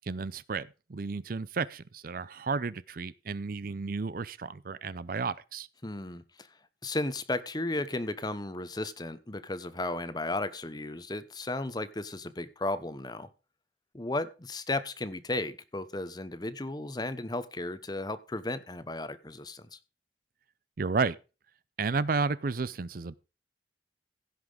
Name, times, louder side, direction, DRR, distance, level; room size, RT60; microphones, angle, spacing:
voice 1, 0.0-5.7 20.8-21.2 21.8-23.1, right 4 dB, 55° right, 0.5 m, -32 dB
voice 2, 5.8-6.5 6.8-13.3 13.9-19.8, left 2 dB, 25° left, 0.9 m, -34 dB
16.0 x 6.0 x 5.0 m
head